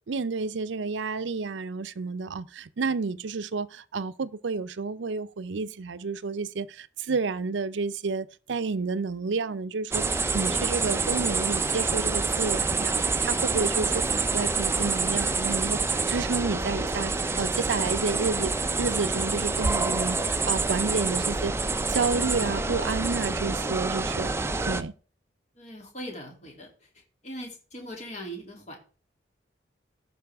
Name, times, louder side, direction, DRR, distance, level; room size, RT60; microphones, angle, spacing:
voice 1, 0.1-10.1 10.3-12.9 13.2-21.5 21.9-24.3 24.6-24.9, right 4 dB, 75° right, 0.5 m, -30 dB
sound 1, 9.9-24.8, right 3 dB, 15° right, 0.4 m, -27 dB
voice 2, 25.6-26.7 27.2-28.8, equal, 40° left, 2.7 m, -40 dB
14.5 x 5.6 x 3.5 m
head